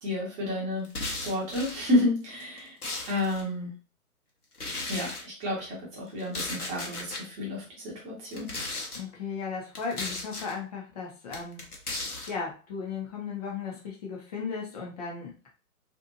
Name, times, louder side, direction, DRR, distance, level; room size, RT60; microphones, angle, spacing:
voice 1, 0.0-0.9 1.2-2.8 3.1-3.7 4.9-8.5, left 1 dB, 15° right, -4 dB, 1.1 m, -30 dB
sound 1, 0.8-1.8 2.4-3.4 4.5-5.2 6.2-7.2 8.3-9.0 9.7-10.5 11.3-12.3, left 2 dB, 85° left, 1.0 m, -36 dB
voice 2, 8.9-11.6 12.3-15.5, left 5 dB, 25° left, -2 dB, 0.7 m, -36 dB
2.9 x 2.5 x 2.6 m, 0.34 s
figure-of-eight pair, 125°, 44 cm